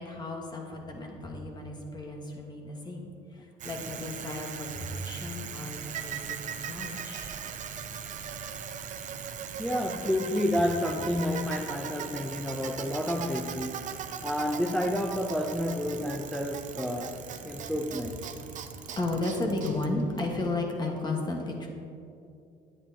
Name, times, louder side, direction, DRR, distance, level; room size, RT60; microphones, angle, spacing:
voice 1, 0.0-7.3 17.5-17.7 18.5-21.7, left 2 dB, 25° left, 1 dB, 1.3 m, -34 dB
Bicycle, 3.6-20.7, right 7 dB, 50° right, 0.6 m, -39 dB
voice 2, 9.6-18.3, left 1 dB, 5° left, 1 dB, 0.5 m, -30 dB
9.7 x 8.8 x 2.8 m, 2.6 s
cardioid pair, 110°, 17 cm